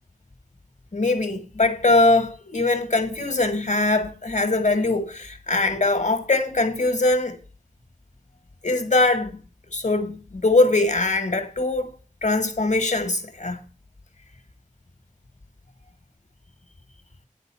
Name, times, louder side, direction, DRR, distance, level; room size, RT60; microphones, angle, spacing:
voice 1, 0.9-7.4 8.6-9.4 9.7-11.9 12.2-13.6, left 2 dB, 65° left, 1.5 m, -22 dB
10.5 x 3.9 x 7.4 m
wide cardioid pair, 45°, 13 cm